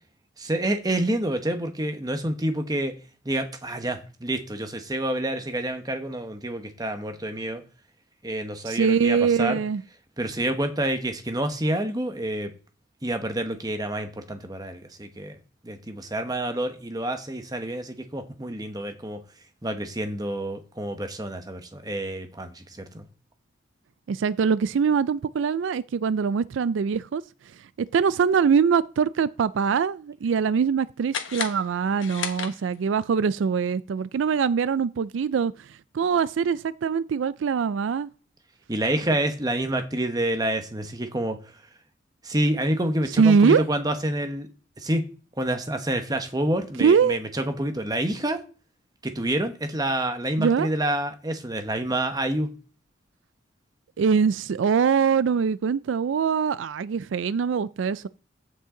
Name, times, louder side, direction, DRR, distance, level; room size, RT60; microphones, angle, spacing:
voice 1, 0.4-2.9 3.2-7.6 8.2-9.6 10.2-12.5 13.0-15.4 15.6-19.2 19.6-23.1 38.7-41.4 42.2-44.5 44.8-45.0 45.4-48.4 49.0-52.5, right 1 dB, 20° right, 1.1 m, -28 dB
voice 2, 8.7-9.8 24.1-27.2 27.9-35.5 35.9-38.1 43.2-43.6 46.8-47.2 50.4-50.7 54.0-58.1, right 6 dB, 75° right, 0.4 m, -23 dB
sound 1, 31.1-33.0, left 7 dB, 85° left, 1.2 m, -34 dB
15.0 x 5.5 x 3.8 m
head